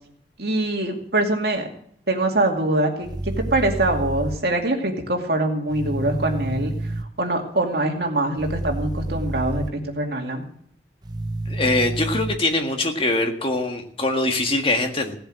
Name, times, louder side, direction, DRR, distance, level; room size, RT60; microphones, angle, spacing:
voice 1, 0.4-1.7 2.1-6.7 7.2-10.4, right 2 dB, 65° right, 2 dB, 2.5 m, -23 dB
sound 1, 3.0-4.4 5.7-7.0 8.4-9.7 11.0-12.3, right 2 dB, 25° right, 0.7 m, -29 dB
voice 2, 11.5-15.2, left 2 dB, 30° left, 4 dB, 1.7 m, -23 dB
17.0 x 7.9 x 7.6 m, 0.64 s
head